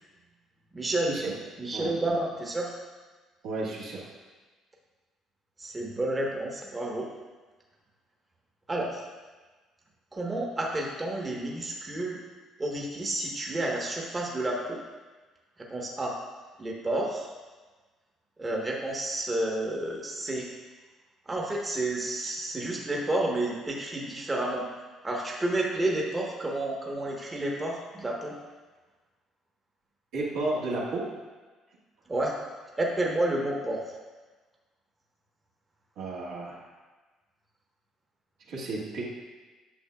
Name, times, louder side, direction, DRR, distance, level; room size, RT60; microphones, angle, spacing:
voice 1, 0.7-1.1 1.6-2.7 5.6-7.1 8.7-9.0 10.1-12.2 12.6-14.8 15.7-16.1 16.6-17.3 18.4-20.5 21.3-24.6 25.0-28.3 32.1-32.3 32.8-33.9, right 1 dB, 25° right, -1 dB, 1.2 m, -30 dB
voice 2, 1.7-2.2 3.4-4.0 30.1-31.1 36.0-36.6 38.5-39.0, right 2 dB, 75° right, -5 dB, 1.8 m, -32 dB
8.8 x 6.2 x 2.4 m, 1.3 s
supercardioid pair, 65°, 0 cm